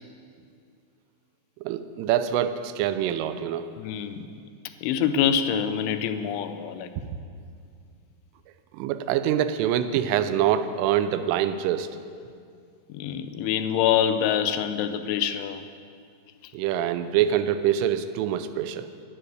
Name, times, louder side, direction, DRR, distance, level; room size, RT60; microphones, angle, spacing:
voice 1, 1.6-3.7 7.0-7.1 8.7-11.9 16.5-18.9, right 10 dB, 85° right, 12 dB, 3.2 m, -25 dB
voice 2, 3.8-4.3 4.8-6.9 12.9-15.6, left 9 dB, 85° left, 10 dB, 3.0 m, -25 dB
11.5 x 10.5 x 9.5 m, 2.3 s
omnidirectional pair, 5.6 m